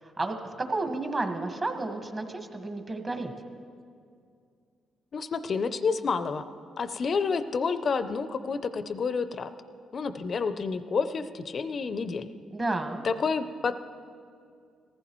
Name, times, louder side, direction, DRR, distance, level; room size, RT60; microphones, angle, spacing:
voice 1, 0.0-3.3 12.5-13.0, right 2 dB, 30° right, 5 dB, 1.4 m, -31 dB
voice 2, 5.1-6.4 6.8-9.5 9.9-12.3 13.0-13.7, left 5 dB, 45° left, 11 dB, 0.5 m, -29 dB
19.0 x 15.0 x 3.1 m, 2.3 s
cardioid pair, 90°, 0 cm